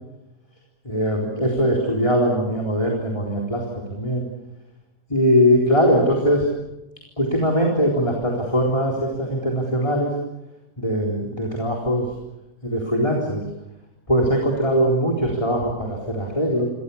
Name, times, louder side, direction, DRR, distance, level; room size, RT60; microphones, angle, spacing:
voice 1, 0.9-3.6 4.0-4.2 5.1-6.5 7.2-10.1 10.8-12.1 12.6-13.4 14.1-16.7, equal, 20° left, -1 dB, 4.0 m, -21 dB
29.0 x 24.5 x 7.1 m, 0.96 s
omnidirectional pair, 1.7 m